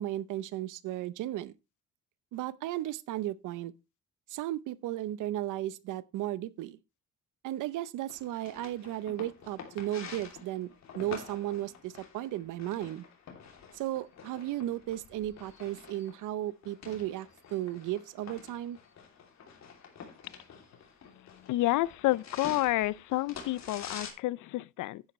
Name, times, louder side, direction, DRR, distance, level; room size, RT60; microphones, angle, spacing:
voice 1, 0.0-1.5 2.3-3.7 4.3-6.8 7.4-13.0 13.7-18.8, right 14 dB, 90° right, 0.8 m, -35 dB
sound 1, 8.1-24.1, left 6 dB, 60° left, 3.0 m, -48 dB
voice 2, 21.1-25.0, left 17 dB, 80° left, 0.5 m, -30 dB
10.5 x 10.0 x 3.2 m
cardioid pair, 90°, 30 cm